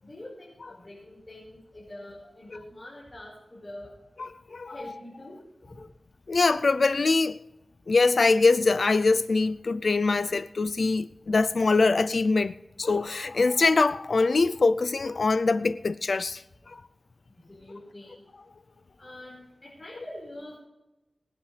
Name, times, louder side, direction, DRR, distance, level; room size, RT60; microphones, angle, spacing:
voice 1, 0.0-3.9 4.7-5.4 5.6-5.7 17.3-18.2 19.0-20.6, left 1 dB, 35° left, 4.9 m, -44 dB
voice 2, 4.2-4.8 6.3-7.4 7.9-16.4 16.7-16.8, left 3 dB, 70° left, 0.4 m, -23 dB
24.5 x 9.9 x 3.3 m
wide cardioid pair, 65°, 0 cm